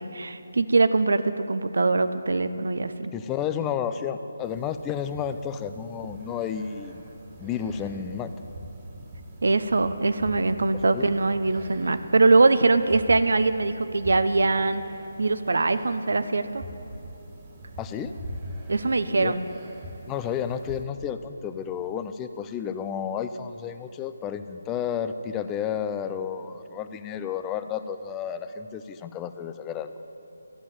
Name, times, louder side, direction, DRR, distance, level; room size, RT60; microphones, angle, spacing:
voice 1, 0.0-3.1 9.4-14.8 15.2-16.6 18.7-19.4, right 3 dB, 75° right, 12 dB, 0.7 m, -22 dB
voice 2, 3.1-7.0 7.4-8.3 10.8-11.1 17.8-18.1 19.2-19.3 20.1-29.9, left 8 dB, 15° left, 10 dB, 0.4 m, -31 dB
sound 1, 4.4-20.8, right 1 dB, 25° right, 1.9 m, -43 dB
13.5 x 7.4 x 10.0 m, 2.9 s
figure-of-eight pair, 160°, 0 cm